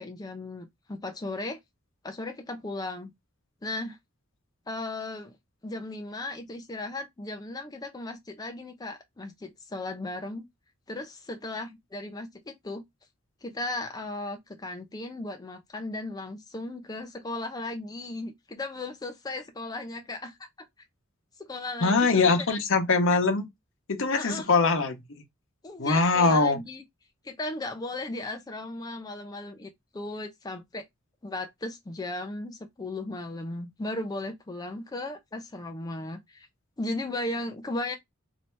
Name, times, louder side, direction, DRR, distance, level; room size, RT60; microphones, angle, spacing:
voice 1, 0.0-1.6 2.0-3.1 3.6-4.0 4.7-5.4 5.6-10.5 10.9-12.8 13.4-20.5 21.4-22.3 24.2-24.5 25.6-26.8 27.2-30.8 31.2-36.5 36.8-38.0, left 2 dB, 20° left, 0.5 m, -36 dB
voice 2, 21.8-23.5 23.9-25.0 25.8-26.6, left 4 dB, 65° left, 0.9 m, -22 dB
3.2 x 2.7 x 4.4 m
head